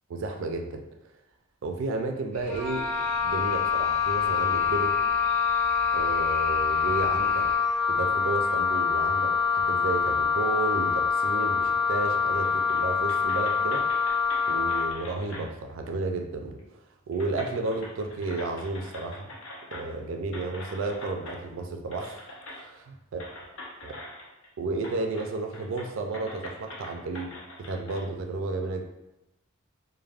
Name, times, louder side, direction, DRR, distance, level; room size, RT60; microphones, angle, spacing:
voice 1, 0.1-0.8 1.6-2.9 3.2-5.0 5.9-7.5 7.9-14.1 14.5-16.6 17.1-19.3 19.7-22.2 22.5-23.2 23.8-24.0 24.6-27.3 27.7-28.8, right 3 dB, 65° right, 4 dB, 0.3 m, -32 dB
sound 1, 2.3-7.6, equal, 5° left, 0.4 m, -43 dB
Wind instrument woodwind instrument, 2.5-14.9, left 6 dB, 35° left, 0.8 m, -25 dB
sound 2, 12.4-12.8 13.1-15.5 16.6-16.7 17.1-20.0 20.3-21.4 21.9-22.6 23.2-24.5 24.8-25.3 25.5-28.0, left 1 dB, 65° left, 0.6 m, -43 dB
3.2 x 2.1 x 2.3 m, 0.94 s
head